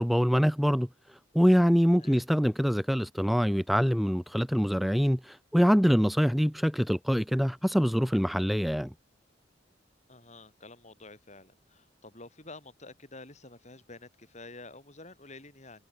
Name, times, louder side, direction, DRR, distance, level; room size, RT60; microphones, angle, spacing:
voice 1, 0.0-8.9, equal, ahead, 1.1 m, -25 dB
voice 2, 10.1-15.9, left 2 dB, 40° left, 6.6 m, -49 dB
head